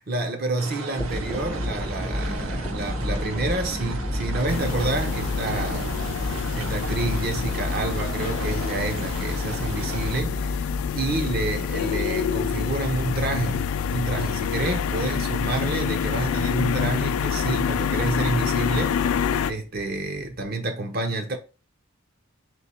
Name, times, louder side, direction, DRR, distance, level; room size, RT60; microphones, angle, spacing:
voice 1, 0.1-5.9 6.2-21.4, right 2 dB, 45° right, 0.8 m, -29 dB
sound 1, 0.6-10.2, right 4 dB, 75° right, 0.7 m, -36 dB
sound 2, 0.9-20.5, left 1 dB, 5° right, 0.6 m, -34 dB
sound 3, 4.5-19.5, left 7 dB, 80° left, 0.3 m, -27 dB
3.4 x 3.1 x 4.2 m
head